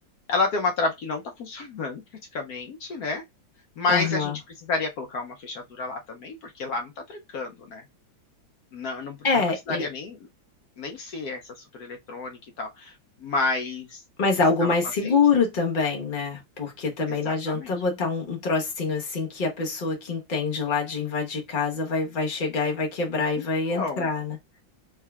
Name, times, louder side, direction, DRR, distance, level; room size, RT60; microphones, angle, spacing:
voice 1, 0.3-2.0 2.3-3.2 3.8-4.3 4.7-7.8 8.7-10.2 10.8-12.9 13.2-14.0 14.6-14.7 15.0-15.2 17.1-17.7 23.4-24.1, left 3 dB, 70° left, 1.0 m, -30 dB
voice 2, 3.9-4.3 9.2-9.9 14.2-24.4, left 4 dB, 35° left, 0.8 m, -25 dB
3.6 x 3.3 x 2.3 m
omnidirectional pair, 2.1 m